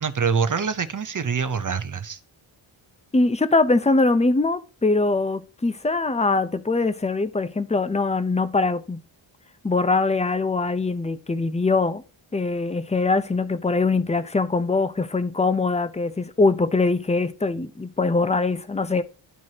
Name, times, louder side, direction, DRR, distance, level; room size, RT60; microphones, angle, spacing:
voice 1, 0.0-2.2, right 6 dB, 40° right, 0.7 m, -25 dB
voice 2, 3.1-9.0 9.6-12.0 12.3-19.0, left 3 dB, 15° left, 0.6 m, -22 dB
12.5 x 4.7 x 2.8 m
wide cardioid pair, 75°, 49 cm